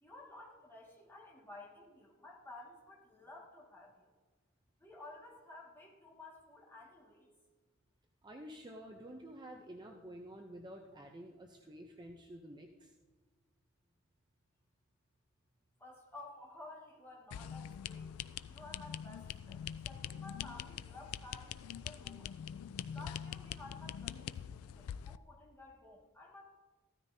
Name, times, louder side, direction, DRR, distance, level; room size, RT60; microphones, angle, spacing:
voice 1, 0.0-4.0 4.8-7.3 15.8-18.2 18.5-22.3 22.9-26.4, left 2 dB, 10° left, -3 dB, 1.8 m, -53 dB
voice 2, 8.2-12.9, right 1 dB, 20° right, 2 dB, 0.6 m, -50 dB
sound 1, 17.3-25.2, left 9 dB, 85° left, 0.3 m, -44 dB
15.0 x 13.0 x 2.7 m, 1.3 s
head